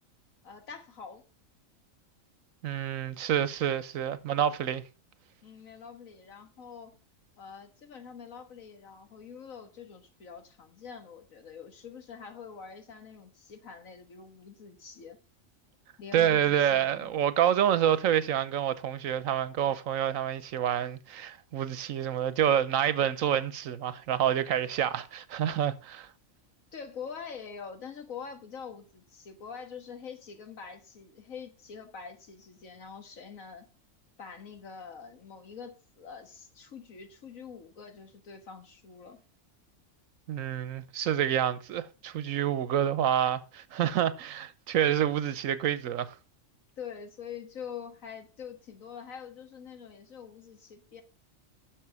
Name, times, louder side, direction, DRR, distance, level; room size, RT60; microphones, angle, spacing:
voice 1, 0.4-1.2 5.4-6.9 7.4-15.2 16.0-17.1 26.7-33.7 34.2-39.2 46.8-51.0, left 6 dB, 90° left, 1.9 m, -45 dB
voice 2, 2.6-4.8 16.1-26.1 40.3-46.2, right 10 dB, 85° right, 1.2 m, -28 dB
10.0 x 6.5 x 4.8 m
omnidirectional pair, 1.4 m